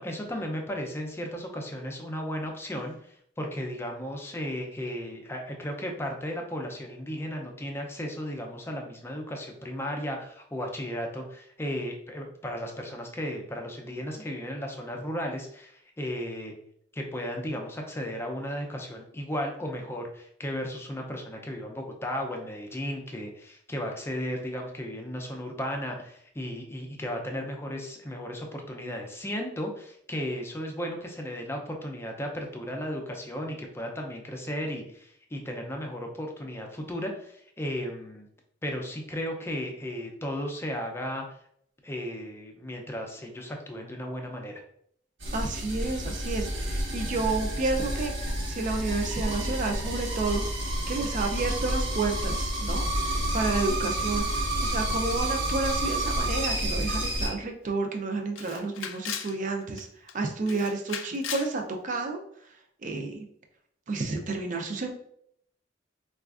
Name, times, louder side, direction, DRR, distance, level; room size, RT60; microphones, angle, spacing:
voice 1, 0.0-16.5 16.9-38.3 38.6-41.2 41.8-44.6, equal, 15° left, 2 dB, 0.4 m, -35 dB
sound 1, 45.2-57.3, right 1 dB, 85° right, 0.9 m, -29 dB
voice 2, 45.3-48.1 48.5-50.4 50.9-52.8 53.3-59.9 60.1-62.2 62.8-63.3 63.9-64.9, right 3 dB, 45° right, 4 dB, 0.4 m, -30 dB
Camera, 57.3-57.4 57.7-57.8 58.4-59.4 59.8-60.1 60.5-61.5, left 9 dB, 85° left, 0.3 m, -37 dB
4.2 x 2.4 x 2.4 m, 0.68 s
head